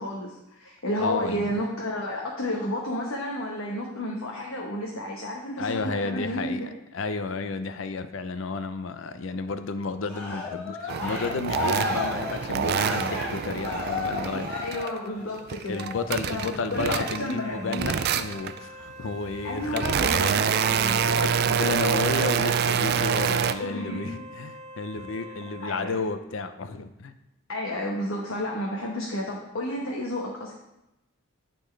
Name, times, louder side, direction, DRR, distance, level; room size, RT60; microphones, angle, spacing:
voice 1, 0.0-6.7 14.2-15.8 16.3-17.8 19.4-21.0 23.6-24.1 25.6-26.0 27.5-30.5, left 1 dB, 85° left, -2 dB, 1.0 m, -31 dB
voice 2, 1.0-1.6 5.6-14.5 15.7-19.8 20.1-20.4 21.1-27.2, left 4 dB, 70° left, 10 dB, 0.5 m, -32 dB
Cheering, 10.0-15.3 15.7-16.1, left 4 dB, 10° left, 2.1 m, -34 dB
sound 1, 10.9-15.0 15.4-17.4 17.7-18.6 19.2-23.5, right 7 dB, 50° right, 0.3 m, -26 dB
Wind instrument woodwind instrument, 16.8-26.1, right 1 dB, 30° left, 1.6 m, -45 dB
11.5 x 4.3 x 3.2 m, 0.92 s
head